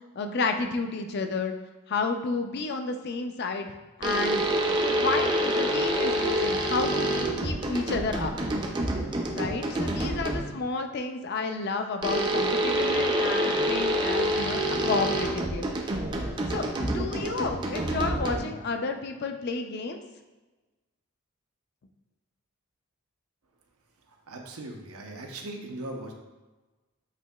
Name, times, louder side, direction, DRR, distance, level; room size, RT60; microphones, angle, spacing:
voice 1, 0.1-1.6 1.9-4.5 5.0-7.1 7.4-8.5 9.3-15.7 16.5-20.0, left 4 dB, 50° left, 6 dB, 0.4 m, -31 dB
sound 1, 4.0-10.6 12.0-18.7, right 1 dB, 20° right, 0.3 m, -27 dB
voice 2, 24.3-26.1, right 2 dB, 85° right, 2 dB, 0.7 m, -39 dB
8.1 x 2.8 x 2.3 m, 1.2 s
head